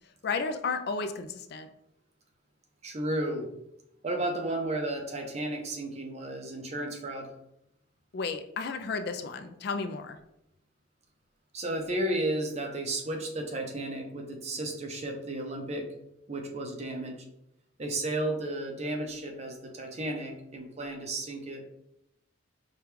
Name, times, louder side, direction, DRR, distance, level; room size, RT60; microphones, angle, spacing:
voice 1, 0.2-1.7 8.1-10.2, left 4 dB, 55° left, 8 dB, 0.3 m, -33 dB
voice 2, 2.8-3.5 4.0-7.3 11.5-15.9 16.3-17.2 17.8-21.6, right 1 dB, 35° right, 2 dB, 0.6 m, -33 dB
5.0 x 2.3 x 3.1 m, 0.80 s
head